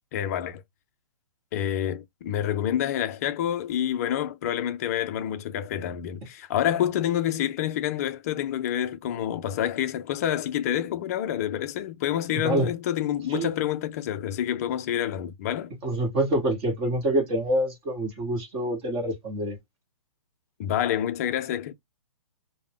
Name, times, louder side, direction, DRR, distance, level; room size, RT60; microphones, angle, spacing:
voice 1, 0.1-0.6 1.5-15.7 20.6-21.7, left 11 dB, 30° left, 0.4 m, -28 dB
voice 2, 12.3-12.7 13.3-13.5 15.8-19.6, right 1 dB, 20° right, 1.1 m, -26 dB
2.5 x 2.1 x 3.2 m
hypercardioid pair, 155°, 18 cm